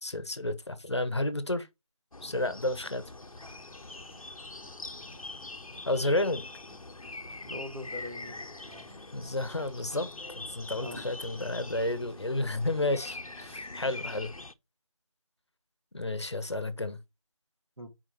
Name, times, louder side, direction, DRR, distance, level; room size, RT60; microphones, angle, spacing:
voice 1, 0.0-1.7 2.2-3.0 5.8-6.4 9.1-10.1 10.3-14.3 15.9-17.0, left 2 dB, 50° left, 1.2 m, -31 dB
sound 1, 2.1-14.5, left 2 dB, 75° left, 0.9 m, -43 dB
sound 2, 2.8-13.6, right 1 dB, 45° right, 2.3 m, -60 dB
voice 2, 7.4-8.9 9.3-9.4 10.7-11.0 17.8-17.9, left 2 dB, 80° right, 2.4 m, -42 dB
4.7 x 4.7 x 5.9 m
figure-of-eight pair, 175°, 18 cm